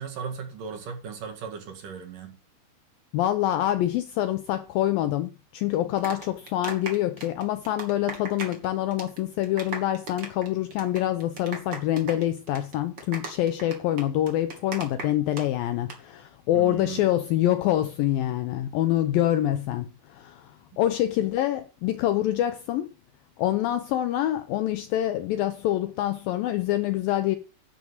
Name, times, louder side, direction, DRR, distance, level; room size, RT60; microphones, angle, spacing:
voice 1, 0.0-2.3 16.5-17.1, right 6 dB, 55° right, 3.5 m, -37 dB
voice 2, 3.1-22.9 23.4-27.4, left 13 dB, 80° left, 2.1 m, -26 dB
sound 1, 5.7-8.7 8.9-9.2 9.4-15.4 15.7-16.0, right 3 dB, 30° right, 2.7 m, -37 dB
11.0 x 6.2 x 7.9 m
omnidirectional pair, 4.8 m